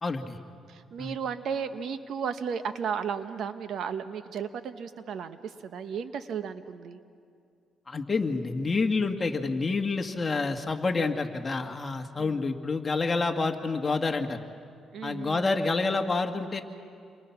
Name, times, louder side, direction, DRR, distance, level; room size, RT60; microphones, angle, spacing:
voice 1, 0.0-0.4 1.0-1.1 7.9-14.4 15.0-16.6, left 3 dB, 30° left, 4 dB, 1.9 m, -28 dB
voice 2, 0.7-7.0 12.2-12.4 14.9-15.6, right 7 dB, 70° right, 9 dB, 1.2 m, -34 dB
29.5 x 24.0 x 6.0 m, 2.3 s
cardioid pair, 90°, 0 cm